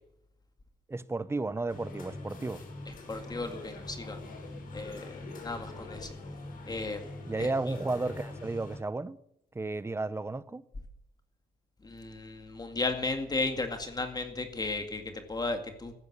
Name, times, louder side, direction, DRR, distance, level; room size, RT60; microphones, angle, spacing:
voice 1, 0.9-2.6 7.3-9.2 9.5-10.6, right 3 dB, 15° right, 0.8 m, -33 dB
sound 1, 1.7-8.8, left 2 dB, 60° left, 5.9 m, -43 dB
voice 2, 3.1-4.2 4.7-6.1 6.7-7.0 7.4-7.5 11.8-15.9, left 3 dB, 25° left, 2.1 m, -34 dB
15.0 x 11.0 x 8.7 m
cardioid pair, 115°, 16 cm